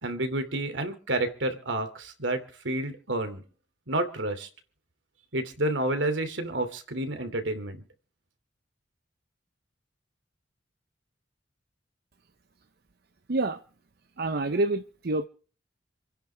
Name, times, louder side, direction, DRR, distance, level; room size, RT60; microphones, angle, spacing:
voice 1, 0.0-3.4 3.9-4.5 5.3-7.8, right 1 dB, 80° right, 2.8 m, -30 dB
voice 2, 13.3-13.6 14.2-15.2, right 2 dB, 60° right, 0.8 m, -27 dB
28.0 x 10.5 x 3.5 m
head